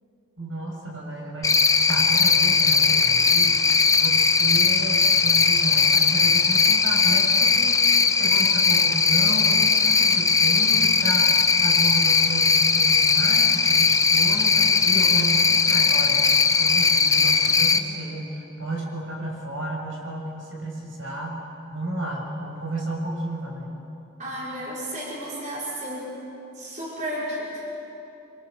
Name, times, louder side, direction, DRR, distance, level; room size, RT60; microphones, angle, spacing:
voice 1, 0.4-21.4 21.7-23.8, right 1 dB, 80° right, -1 dB, 6.6 m, -32 dB
Cricket, 1.4-17.8, left 5 dB, 15° left, 0.7 m, -19 dB
voice 2, 24.2-26.1 26.6-27.8, equal, 35° right, -6 dB, 5.9 m, -32 dB
26.0 x 26.0 x 6.8 m, 3.0 s
head